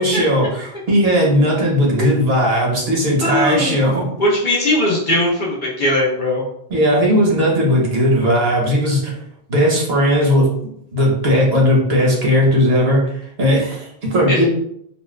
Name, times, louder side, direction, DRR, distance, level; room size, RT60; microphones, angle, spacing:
voice 1, 0.0-4.1 6.7-9.1 9.5-10.5 10.9-13.0 13.4-14.5, equal, 70° right, -2 dB, 1.1 m, -16 dB
voice 2, 3.2-3.8 4.2-6.4 14.3-14.4, left 1 dB, 50° left, -4 dB, 0.9 m, -19 dB
4.0 x 2.1 x 2.2 m, 0.72 s
omnidirectional pair, 1.1 m